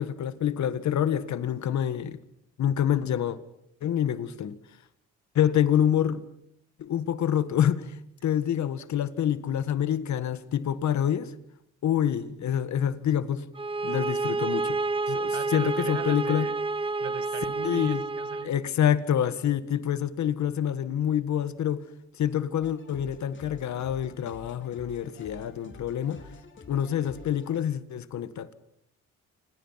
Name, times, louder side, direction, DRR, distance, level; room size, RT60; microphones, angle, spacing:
voice 1, 0.0-2.2 2.6-3.4 3.8-4.6 5.4-6.2 6.8-8.0 8.2-11.3 11.8-13.4 13.8-14.8 15.1-16.5 17.6-18.0 18.4-21.8 22.2-26.2 26.7-28.5, left 9 dB, 65° left, 1.8 m, -27 dB
sound 1, 13.5-18.5, right 3 dB, 20° right, 1.1 m, -29 dB
voice 2, 15.3-16.6 17.0-18.5, right 10 dB, 70° right, 1.6 m, -39 dB
sound 2, 22.6-27.6, left 4 dB, 40° left, 4.3 m, -49 dB
28.5 x 26.0 x 5.9 m
cardioid pair, 90°, 30 cm